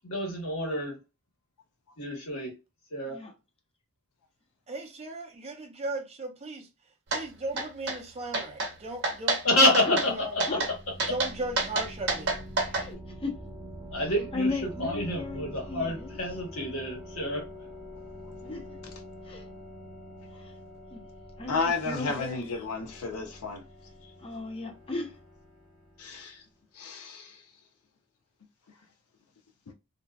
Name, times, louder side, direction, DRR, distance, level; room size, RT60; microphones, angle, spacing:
voice 1, 0.0-0.9 2.0-2.5 2.9-3.2 9.4-10.4 13.9-14.5 14.8-17.4, left 1 dB, 70° left, 1.3 m, -27 dB
voice 2, 4.7-6.7 7.1-9.7 10.0-10.4 11.1-12.4, right 2 dB, 30° right, 0.6 m, -36 dB
sound 1, 7.1-7.2 7.6-8.0 8.3-8.7 9.0-9.4 9.7-10.1 10.4-10.7 11.0-12.9, right 3 dB, 55° right, 0.8 m, -28 dB
sound 2, 9.9-26.3, equal, 5° right, 0.8 m, -45 dB
voice 3, 12.7-13.4 14.0-16.4 18.4-18.8 19.2-19.4 20.3-20.5 20.9-21.1 21.4-22.5 24.2-25.2, left 2 dB, 25° left, 0.7 m, -36 dB
voice 4, 21.5-23.6 26.0-26.4 26.8-27.4, left 4 dB, 85° left, 0.5 m, -32 dB
2.6 x 2.2 x 2.2 m
head